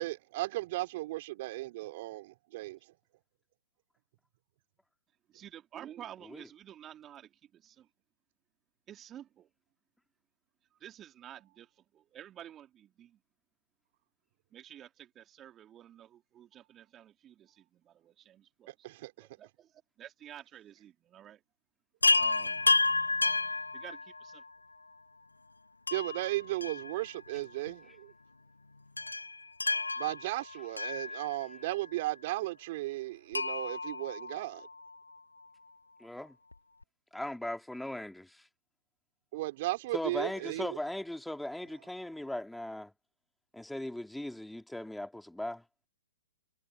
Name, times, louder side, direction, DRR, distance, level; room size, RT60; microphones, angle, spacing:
voice 1, 0.0-2.8 18.7-19.3 25.9-28.1 30.0-34.7 39.3-40.8, right 18 dB, 45° right, 3.3 m, -35 dB
voice 2, 5.3-7.9 8.9-9.5 10.8-13.2 14.5-18.7 19.2-19.7 20.0-21.4 22.2-22.7 23.7-24.4, right 11 dB, 20° right, 3.4 m, -51 dB
Chime, 22.0-24.5 25.9-27.4 27.7-27.8 29.0-31.7 33.3-34.9 36.5-36.6 36.8-36.9, left 3 dB, 90° left, 0.6 m, -31 dB
voice 3, 36.0-36.4 37.1-38.4 39.9-42.9 43.5-45.6, left 1 dB, ahead, 2.7 m, -38 dB
figure-of-eight pair, 120°, 0 cm